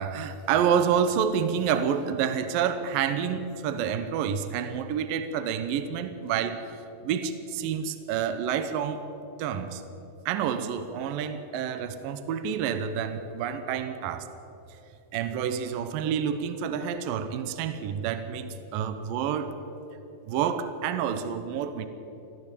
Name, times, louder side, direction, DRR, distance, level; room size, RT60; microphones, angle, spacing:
voice 1, 0.0-6.7 7.0-9.0 9.4-9.8 10.3-14.3 15.1-19.6 20.3-21.9, right 8 dB, 75° right, 10 dB, 2.1 m, -28 dB
21.5 x 15.0 x 8.4 m, 2.9 s
omnidirectional pair, 5.2 m